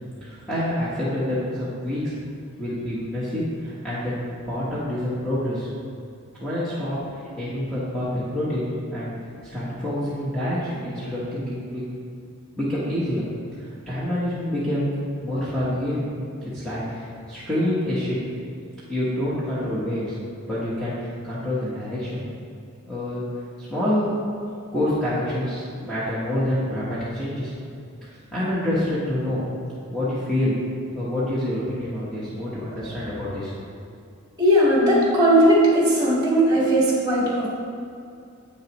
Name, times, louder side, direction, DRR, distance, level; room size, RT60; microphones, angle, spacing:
voice 1, 0.2-2.1 2.6-4.1 4.5-5.7 6.4-7.0 7.4-9.1 9.4-11.8 12.6-13.2 13.6-14.8 15.2-16.1 16.4-18.2 18.9-20.2 20.5-22.2 22.8-23.2 23.6-24.1 24.7-27.5 28.3-29.4 29.9-30.5 30.9-33.5, left 1 dB, 5° left, -11 dB, 1.2 m, -27 dB
voice 2, 34.4-37.5, equal, 20° right, -6 dB, 1.8 m, -18 dB
8.1 x 6.4 x 3.1 m, 2.4 s
head